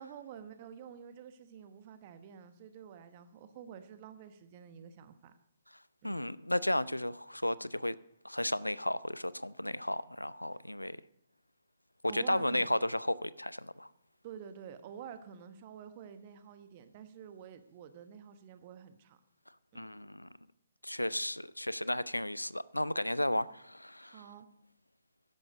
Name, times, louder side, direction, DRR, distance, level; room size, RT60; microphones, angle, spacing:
voice 1, 0.0-5.3 6.0-6.3 12.1-12.8 14.2-19.2 19.7-19.9 23.3-23.4 24.0-24.5, right 8 dB, 35° right, 1.1 m, -49 dB
voice 2, 6.0-8.0 8.2-11.0 12.0-13.9 19.7-20.3 20.8-24.2, left 1 dB, 85° left, 0.4 m, -33 dB
12.5 x 10.5 x 5.1 m
figure-of-eight pair, 125°, 0 cm